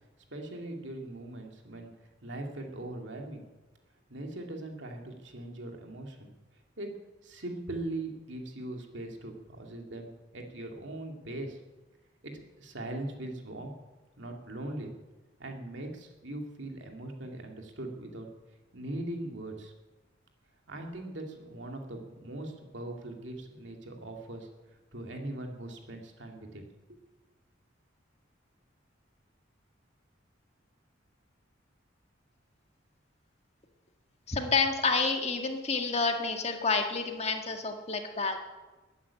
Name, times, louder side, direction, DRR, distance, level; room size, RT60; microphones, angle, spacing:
voice 1, 0.3-1.9 2.2-3.5 4.1-6.3 6.8-7.0 7.2-11.6 12.2-13.7 14.2-14.9 15.4-18.3 18.7-19.7 20.7-24.5 24.9-26.6 26.9-27.0, right 1 dB, 65° right, 3 dB, 2.5 m, -40 dB
voice 2, 34.3-38.4, left 4 dB, 30° left, 4 dB, 1.8 m, -29 dB
14.5 x 9.6 x 9.7 m, 1.2 s
head